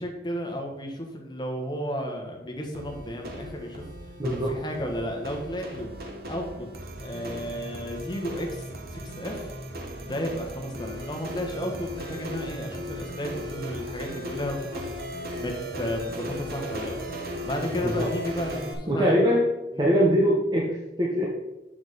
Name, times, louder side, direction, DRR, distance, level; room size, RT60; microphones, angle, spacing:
voice 1, 0.0-3.8 4.3-5.9 6.3-6.7 7.0-8.6 8.9-9.5 10.0-19.2 19.7-19.9, equal, 25° left, 2 dB, 1.2 m, -33 dB
sound 1, 2.7-18.7, equal, 55° right, 1.2 m, -37 dB
voice 2, 4.2-4.5 17.8-18.1 18.9-19.5 19.8-21.3, equal, 25° right, -3 dB, 0.9 m, -22 dB
7.1 x 6.1 x 4.1 m, 1.0 s
head